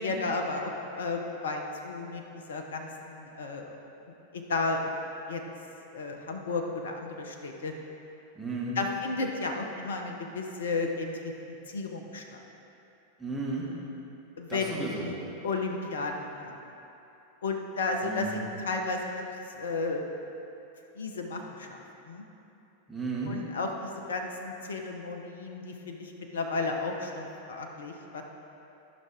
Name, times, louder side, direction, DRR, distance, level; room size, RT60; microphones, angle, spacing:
voice 1, 0.0-3.7 4.3-4.9 5.3-5.4 5.9-7.7 8.7-12.4 14.4-15.2 15.4-16.6 17.4-20.1 21.0-22.2 23.3-28.2, left 3 dB, 65° left, 3 dB, 0.8 m, -33 dB
voice 2, 8.4-8.8 13.2-13.7 14.5-15.1 18.0-18.4 22.9-23.3, right 3 dB, 5° right, -6 dB, 1.9 m, -34 dB
13.5 x 6.0 x 3.5 m, 2.9 s
figure-of-eight pair, 90°, 0 cm